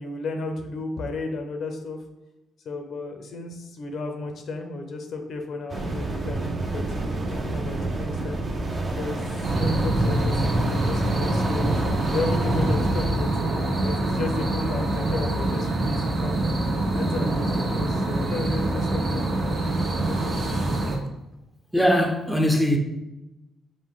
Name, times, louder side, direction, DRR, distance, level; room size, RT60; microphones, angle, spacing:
voice 1, 0.0-2.0 2.6-8.4 9.0-9.2 9.6-13.3 13.8-16.4 16.9-19.6 20.1-20.5, left 3 dB, 65° left, 5 dB, 0.6 m, -33 dB
sound 1, 5.7-13.1, right 2 dB, 35° right, 0.8 m, -29 dB
sound 2, 9.4-21.0, right 1 dB, 55° right, 1.1 m, -25 dB
voice 2, 21.7-22.8, equal, ahead, 2 dB, 0.6 m, -20 dB
5.0 x 2.2 x 3.7 m, 0.95 s
cardioid pair, 90°, 0 cm